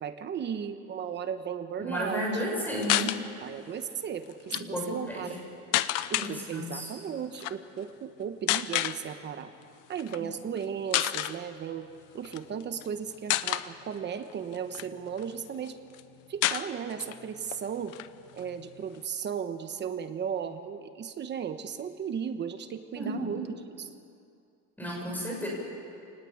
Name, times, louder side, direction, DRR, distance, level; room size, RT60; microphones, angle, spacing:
voice 1, 0.0-2.4 3.4-5.3 6.1-9.5 9.9-11.9 12.1-15.8 16.3-18.0 18.3-23.9, right 7 dB, 35° right, 9 dB, 1.2 m, -35 dB
voice 2, 1.8-3.2 4.5-5.4 6.2-6.9 10.2-10.3 23.0-23.5 24.8-25.5, equal, 5° left, -2 dB, 6.9 m, -33 dB
sound 1, 2.8-3.2 4.3-4.6 5.7-6.3 7.3-7.5 8.5-9.0 10.0-10.2 10.6-10.7 10.9-11.4 12.2-12.9 13.3-13.7 14.3-15.3 15.7-15.8 15.9-16.0 16.4-17.2 17.5-17.6 17.9-19.0, left 15 dB, 65° left, 0.9 m, -29 dB
27.5 x 19.5 x 8.6 m, 2.5 s
cardioid pair, 160°, 32 cm